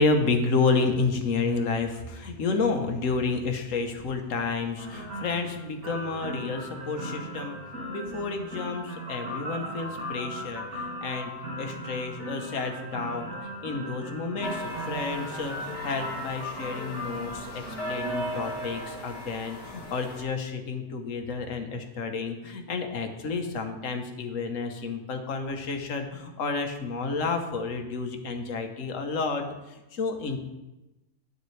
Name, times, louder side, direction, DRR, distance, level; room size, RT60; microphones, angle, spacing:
voice 1, 0.0-7.6 7.9-11.3 11.6-30.4, left 4 dB, 65° left, 5 dB, 1.4 m, -30 dB
sound 1, 4.8-18.7, equal, 75° right, 3.0 m, -38 dB
sound 2, 14.4-20.2, equal, 45° left, 1.8 m, -37 dB
9.4 x 8.7 x 3.2 m, 1.0 s
omnidirectional pair, 1.5 m